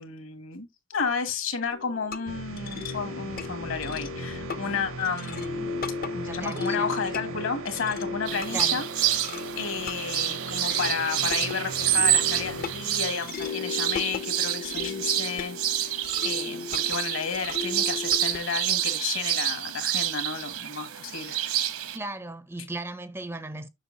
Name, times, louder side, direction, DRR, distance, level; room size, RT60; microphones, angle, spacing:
voice 1, 0.0-9.1 9.5-15.9 16.2-21.4, left 5 dB, 65° left, 1.7 m, -32 dB
sound 1, 1.7-18.4, left 5 dB, 40° left, 0.5 m, -36 dB
sound 2, 2.3-13.3, right 4 dB, 65° right, 0.6 m, -39 dB
voice 2, 6.3-6.9 8.5-8.8 21.9-23.7, right 2 dB, 10° right, 0.4 m, -36 dB
sound 3, 8.3-22.0, right 12 dB, 85° right, 1.0 m, -28 dB
7.3 x 6.1 x 2.7 m
head